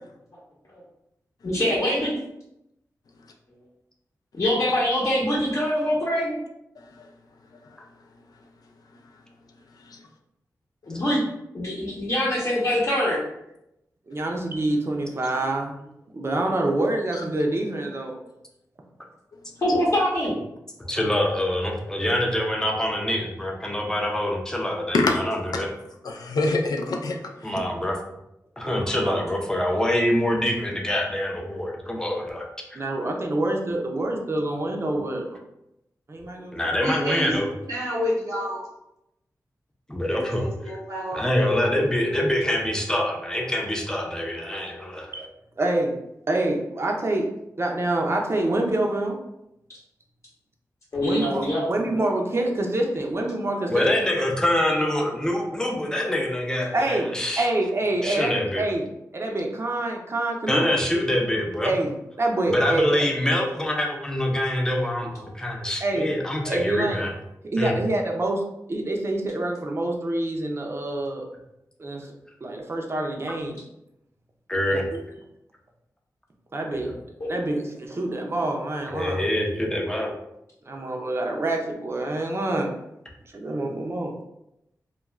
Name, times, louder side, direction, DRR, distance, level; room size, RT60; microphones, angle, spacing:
voice 1, 1.4-2.1 4.4-6.4 10.9-11.2 11.5-13.2 19.6-20.4 38.3-38.4 50.9-52.0 77.2-77.3, left 1 dB, 45° left, -6 dB, 0.8 m, -24 dB
voice 2, 14.1-15.8 16.1-18.2 28.6-29.2 32.7-35.4 36.1-36.8 45.1-45.3 45.6-46.0 46.3-47.3 47.6-49.2 51.0-53.9 56.7-57.1 57.4-58.8 59.1-60.8 61.6-61.9 62.2-63.0 65.8-66.1 66.4-67.0 67.5-68.4 68.7-71.3 71.8-72.1 72.4-73.6 74.7-75.0 76.5-76.9 77.3-79.2 80.6-82.7 83.3-84.2, right 2 dB, 40° right, 1 dB, 0.6 m, -26 dB
voice 3, 20.9-25.7 27.4-28.0 28.6-32.8 36.5-37.5 39.9-40.5 41.1-45.1 53.7-57.5 58.0-58.7 60.5-61.7 62.5-67.1 67.6-67.7 73.3-73.4 74.5-74.9 76.7-77.0 78.9-80.1, left 1 dB, 10° left, 1 dB, 0.6 m, -25 dB
voice 4, 26.0-27.5, left 2 dB, 75° left, 2 dB, 0.4 m, -25 dB
voice 5, 36.8-37.3 37.7-38.6 40.1-41.6, equal, 75° right, -7 dB, 0.9 m, -29 dB
2.4 x 2.2 x 3.1 m, 0.83 s
cardioid pair, 65°, 7 cm